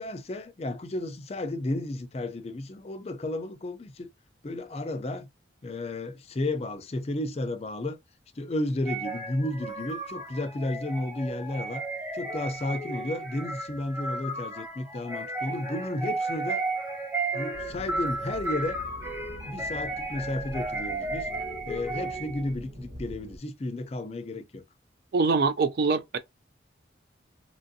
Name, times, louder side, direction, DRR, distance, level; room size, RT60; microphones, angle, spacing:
voice 1, 0.0-4.1 4.4-5.3 5.6-8.0 8.4-11.8 12.1-16.6 17.3-18.8 19.5-21.3 21.6-24.6, left 1 dB, 35° left, 0.4 m, -33 dB
sound 1, 8.9-22.5, right 2 dB, 10° right, 1.2 m, -34 dB
sound 2, 17.5-23.4, equal, 40° right, 0.8 m, -44 dB
voice 2, 25.1-26.2, right 4 dB, 55° right, 0.4 m, -24 dB
3.0 x 2.5 x 2.6 m
head